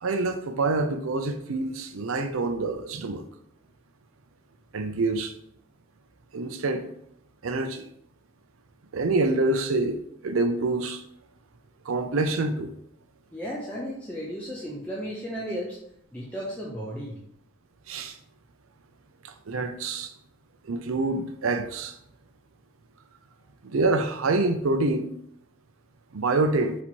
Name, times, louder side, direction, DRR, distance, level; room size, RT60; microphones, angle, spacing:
voice 1, 0.0-3.2 4.7-5.3 6.3-6.9 7.4-7.8 8.9-10.0 10.2-11.0 11.9-12.7 17.9-18.2 19.2-20.1 20.6-21.9 23.6-25.1 26.1-26.8, right 3 dB, 80° right, 0.5 m, -26 dB
voice 2, 13.3-15.8 16.1-17.2, equal, 5° left, 0.6 m, -34 dB
4.1 x 3.0 x 4.3 m
head